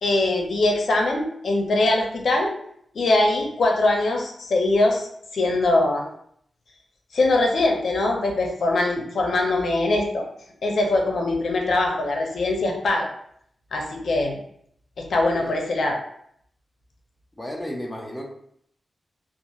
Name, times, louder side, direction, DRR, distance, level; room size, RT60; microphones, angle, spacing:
voice 1, 0.0-2.5 2.9-5.1 5.3-6.0 7.1-10.3 10.6-13.1 13.7-14.4 15.0-16.0, left 2 dB, 70° left, 1 dB, 0.5 m, -22 dB
voice 2, 17.4-18.3, equal, 5° left, -1 dB, 0.4 m, -33 dB
2.8 x 2.4 x 2.3 m, 0.68 s
wide cardioid pair, 155°, 0 cm